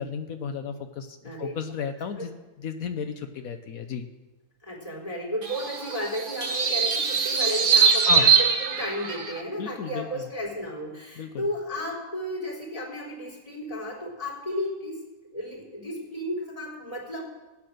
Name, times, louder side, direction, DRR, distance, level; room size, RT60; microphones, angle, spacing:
voice 1, 0.0-4.1 8.0-8.3 9.6-10.3 11.2-11.4, left 6 dB, 75° left, 7 dB, 1.2 m, -34 dB
voice 2, 4.6-15.0 15.3-17.2, equal, 25° left, -3 dB, 3.9 m, -33 dB
sound 1, 5.4-9.4, right 6 dB, 55° right, 1.5 m, -22 dB
15.5 x 8.6 x 6.5 m, 1.2 s
omnidirectional pair, 1.5 m